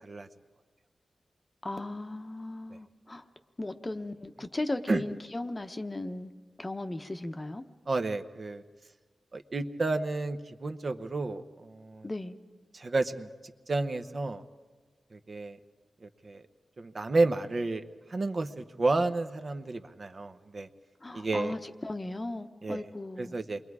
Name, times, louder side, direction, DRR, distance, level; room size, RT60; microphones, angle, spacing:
voice 1, 1.6-3.2 3.6-6.3 6.6-7.6 12.0-12.4 21.0-23.4, left 2 dB, 25° left, 0.9 m, -36 dB
voice 2, 7.9-8.6 9.3-12.1 12.7-13.3 13.7-14.4 15.1-15.6 16.0-16.4 16.8-17.8 18.1-20.7 21.1-21.5 22.6-22.8 23.2-23.6, right 3 dB, 45° right, 0.9 m, -31 dB
28.0 x 22.0 x 4.8 m
wide cardioid pair, 110°, 0 cm